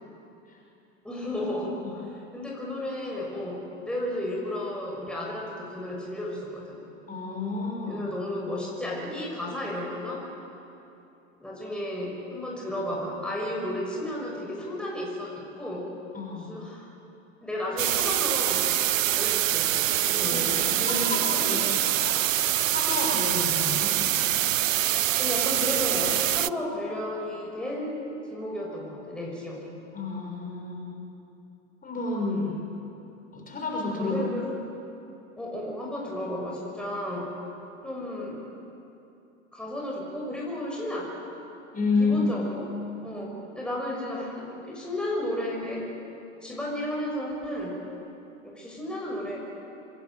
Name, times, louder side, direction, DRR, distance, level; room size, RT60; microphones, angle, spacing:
voice 1, 1.0-2.0 2.3-6.9 7.8-10.3 11.4-15.9 16.3-16.9 17.4-19.7 20.0-21.8 25.2-29.7 34.0-34.5 35.4-37.3 37.8-38.4 39.5-41.1 42.0-42.7 43.0-45.9 46.4-47.8 48.4-49.4, left 1 dB, ahead, -3 dB, 6.4 m, -33 dB
voice 2, 7.1-8.0 16.1-16.5 20.1-22.2 22.7-24.0 29.9-30.9 31.8-32.7 33.3-34.1 41.7-42.3, left 3 dB, 20° left, -1 dB, 6.5 m, -30 dB
sound 1, 17.8-26.5, right 12 dB, 75° right, 0.6 m, -25 dB
26.5 x 20.5 x 9.4 m, 2.8 s
figure-of-eight pair, 80°, 39 cm